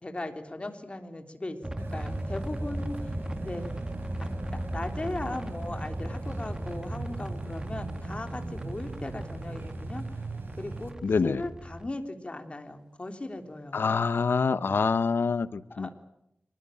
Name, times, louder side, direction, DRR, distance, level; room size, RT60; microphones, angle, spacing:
voice 1, 0.0-3.2 3.4-3.7 4.2-4.3 4.7-10.2 10.6-10.9 11.2-13.8 15.7-15.9, left 2 dB, 35° left, 6 dB, 3.6 m, -38 dB
sound 1, 1.6-11.9, right 1 dB, 20° right, 1.9 m, -37 dB
sound 2, 1.8-10.9, right 3 dB, 80° right, 4.2 m, -40 dB
voice 2, 11.0-11.4 13.7-15.9, left 5 dB, 90° left, 15 dB, 1.0 m, -26 dB
26.5 x 21.0 x 9.0 m, 0.81 s
wide cardioid pair, 100°, 4 cm